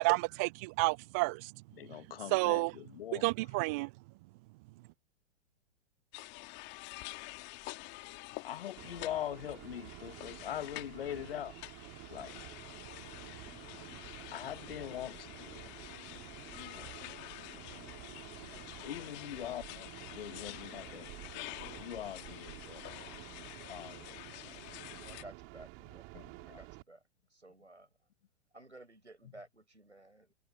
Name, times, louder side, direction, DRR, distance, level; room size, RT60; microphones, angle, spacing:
voice 1, 0.0-1.5 2.3-2.8 3.1-3.9, right 26 dB, 15° right, 0.3 m, -30 dB
voice 2, 1.8-3.2 8.4-11.5 12.1-12.3 14.3-15.5 16.7-16.9 18.8-21.0 21.8-22.8 23.7-24.4 26.1-26.6, left 11 dB, 55° left, 1.6 m, -42 dB
sound 1, 6.1-25.2, left 24 dB, 30° left, 2.6 m, -48 dB
sound 2, 8.8-26.8, right 30 dB, 35° right, 5.7 m, -50 dB
voice 3, 25.0-26.1 26.5-27.0 27.3-27.9 28.5-30.3, right 2 dB, 90° right, 5.7 m, -54 dB
open air
figure-of-eight pair, 105°, 34 cm